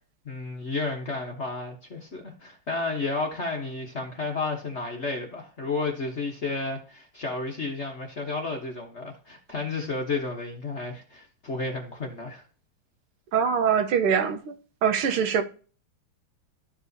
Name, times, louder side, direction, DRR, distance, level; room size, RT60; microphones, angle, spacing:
voice 1, 0.2-12.4, left 3 dB, 40° left, 1.0 m, -32 dB
voice 2, 13.3-14.5 14.8-15.4, right 7 dB, 80° right, 1.8 m, -23 dB
12.5 x 5.4 x 2.7 m
omnidirectional pair, 2.4 m